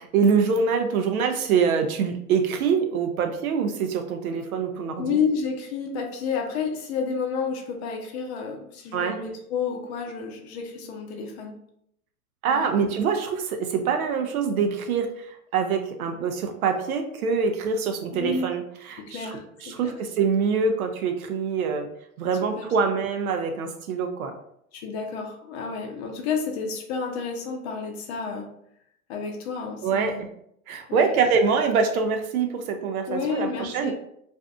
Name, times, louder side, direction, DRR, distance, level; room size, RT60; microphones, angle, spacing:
voice 1, 0.0-5.2 8.9-9.2 12.4-21.9 22.2-24.3 29.8-30.1 30.7-33.9, right 5 dB, 70° right, 6 dB, 0.6 m, -25 dB
voice 2, 5.0-11.5 12.5-12.7 18.1-18.5 19.0-19.9 22.4-22.7 24.7-28.5 29.1-30.2 30.9-31.2 33.1-33.9, left 5 dB, 45° left, 2 dB, 0.6 m, -30 dB
2.5 x 2.4 x 2.2 m, 0.72 s
hypercardioid pair, 105°, 45 cm